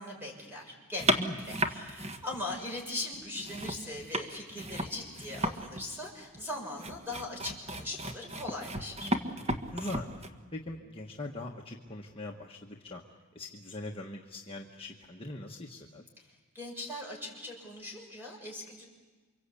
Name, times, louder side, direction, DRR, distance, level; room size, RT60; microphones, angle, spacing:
voice 1, 0.0-9.1 16.3-18.9, left 2 dB, 10° right, 0 dB, 6.2 m, -40 dB
sound 1, 1.0-2.8 3.1-10.3, right 1 dB, 30° right, 1.4 m, -34 dB
voice 2, 1.2-1.6 9.0-13.0 13.3-16.0, left 1 dB, 25° left, -1 dB, 1.3 m, -42 dB
29.0 x 24.5 x 8.4 m, 1.4 s
head